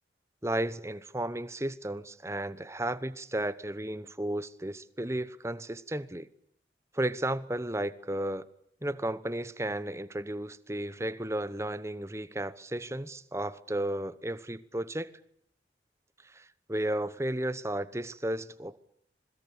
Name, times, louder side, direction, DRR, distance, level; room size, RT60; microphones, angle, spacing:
voice 1, 0.4-6.3 6.9-8.5 8.8-15.1 16.2-18.8, right 1 dB, 15° right, 1.0 m, -33 dB
26.5 x 21.5 x 8.6 m
head